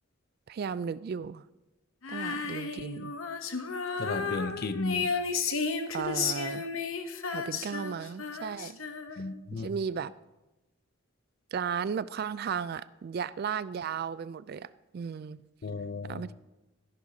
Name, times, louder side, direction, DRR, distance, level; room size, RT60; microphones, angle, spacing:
voice 1, 0.5-1.4 2.1-3.1 5.9-6.7 7.3-8.8 9.5-10.1 11.5-15.4 16.0-16.3, right 6 dB, 50° right, 18 dB, 0.3 m, -35 dB
Female singing, 2.0-9.4, left 5 dB, 85° left, 0.9 m, -33 dB
voice 2, 4.0-5.1 9.2-9.7 15.6-16.2, left 3 dB, 50° left, 11 dB, 0.6 m, -34 dB
13.0 x 11.5 x 2.7 m, 1.0 s
head